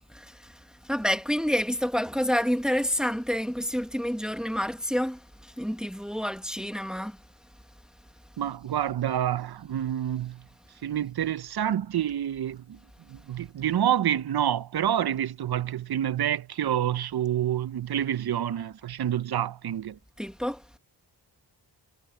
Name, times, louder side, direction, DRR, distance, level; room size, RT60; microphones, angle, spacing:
voice 1, 0.1-7.2 20.2-20.6, equal, ahead, 1.4 m, -29 dB
voice 2, 8.4-10.4 10.8-12.8 13.1-20.0, right 10 dB, 65° right, 0.6 m, -28 dB
wide cardioid pair, 135°, 42 cm